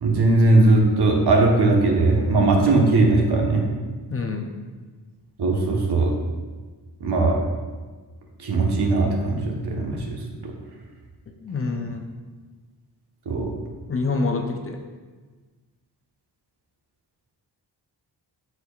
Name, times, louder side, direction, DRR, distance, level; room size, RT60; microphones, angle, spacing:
voice 1, 0.0-3.6 5.4-6.1 7.0-7.4 8.4-10.2 13.3-13.5, right 2 dB, 65° right, 0 dB, 1.2 m, -19 dB
voice 2, 4.1-4.4 11.4-12.0 13.9-14.8, left 3 dB, 35° left, 3 dB, 0.6 m, -26 dB
12.5 x 4.6 x 2.4 m, 1.4 s
wide cardioid pair, 145°, 42 cm